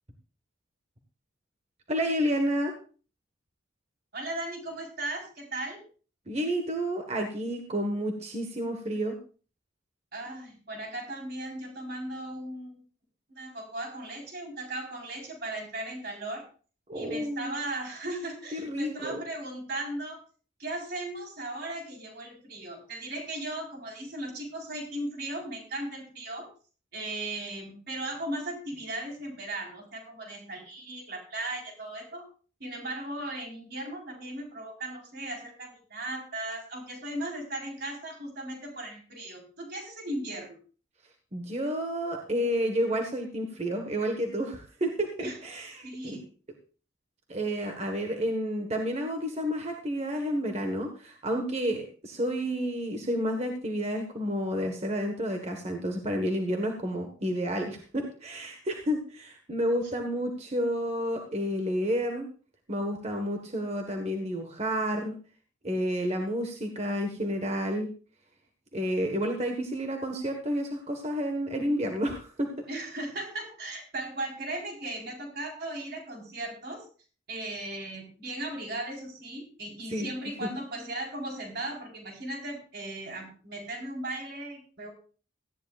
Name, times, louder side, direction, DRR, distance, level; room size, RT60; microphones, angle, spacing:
voice 1, 1.9-2.7 6.3-9.2 16.9-17.5 18.5-19.2 41.3-46.2 47.3-62.3 62.7-65.1 65.6-67.9 68.7-72.6 79.9-80.1 80.4-80.5, equal, 35° right, 3 dB, 1.4 m, -30 dB
voice 2, 4.1-5.8 10.1-12.8 13.3-16.4 16.9-20.2 20.6-26.5 26.9-32.3 32.6-40.6 45.2-45.4 45.8-46.3 72.7-76.9 77.3-84.9, right 1 dB, 50° right, 1 dB, 4.2 m, -37 dB
18.0 x 14.0 x 2.4 m, 0.38 s
head